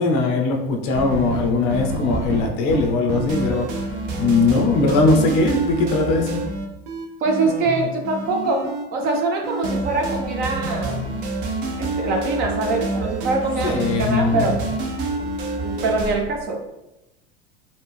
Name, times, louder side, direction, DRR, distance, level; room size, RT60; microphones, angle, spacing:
voice 1, 0.0-3.9 4.2-6.4 13.6-14.6, left 3 dB, 45° left, 3 dB, 0.7 m, -20 dB
sound 1, 0.9-16.2, right 2 dB, 60° right, 0.8 m, -27 dB
voice 2, 7.2-11.0 11.8-14.6 15.6-16.6, right 3 dB, 35° right, 3 dB, 0.4 m, -23 dB
4.3 x 2.7 x 3.4 m, 0.92 s
supercardioid pair, 170°, 30 cm